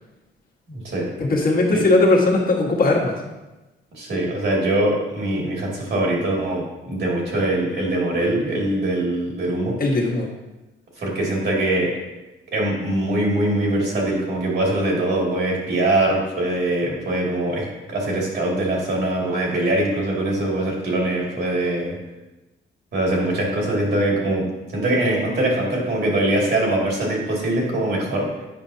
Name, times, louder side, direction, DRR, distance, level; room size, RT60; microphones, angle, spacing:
voice 1, 0.7-1.1 1.7-1.8 3.9-9.7 11.0-11.9 12.5-22.0 22.9-28.3, right 1 dB, 60° right, -2 dB, 2.4 m, -22 dB
voice 2, 1.2-3.1 9.8-10.3, left 2 dB, 45° left, -1 dB, 1.6 m, -18 dB
9.1 x 5.2 x 2.8 m, 1.1 s
cardioid pair, 90°, 20 cm